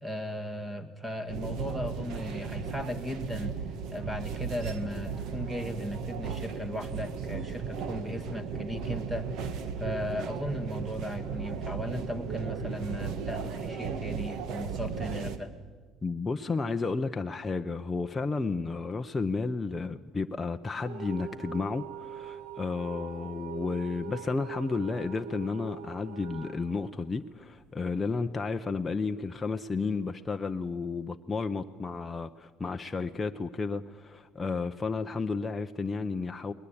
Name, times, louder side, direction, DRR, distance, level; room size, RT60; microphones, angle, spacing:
voice 1, 0.0-3.5 3.9-9.3 9.8-15.5, equal, 10° right, 8 dB, 1.8 m, -36 dB
sound 1, 1.3-15.4, right 6 dB, 60° right, 1.6 m, -36 dB
voice 2, 16.0-36.5, left 4 dB, 15° left, 5 dB, 0.7 m, -32 dB
sound 2, 20.8-27.7, right 7 dB, 75° right, 1.4 m, -43 dB
20.5 x 20.5 x 8.6 m, 1.4 s
cardioid pair, 140°, 0 cm